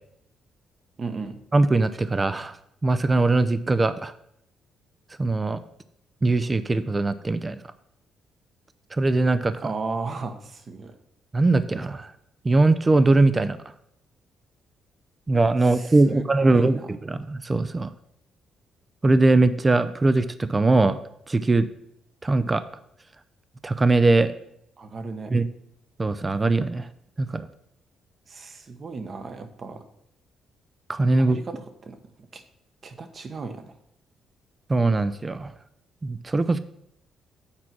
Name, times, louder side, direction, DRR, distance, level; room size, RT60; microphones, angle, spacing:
voice 1, 1.0-1.4 9.6-11.0 15.6-16.9 24.8-25.3 28.3-29.9 31.2-32.4 32.8-33.7, right 4 dB, 40° right, 8 dB, 1.0 m, -35 dB
voice 2, 1.5-2.6 2.8-4.1 5.2-5.6 6.2-7.6 8.9-9.6 11.3-12.1 12.4-13.6 15.3-16.8 17.1-17.9 19.0-21.0 21.3-21.7 22.2-22.6 23.6-24.3 25.3-25.4 26.0-26.9 27.2-27.5 30.9-31.4 34.7-35.5 36.0-36.6, right 2 dB, 25° right, 13 dB, 0.5 m, -21 dB
8.7 x 4.5 x 6.0 m, 0.73 s
cardioid pair, 90°, 0 cm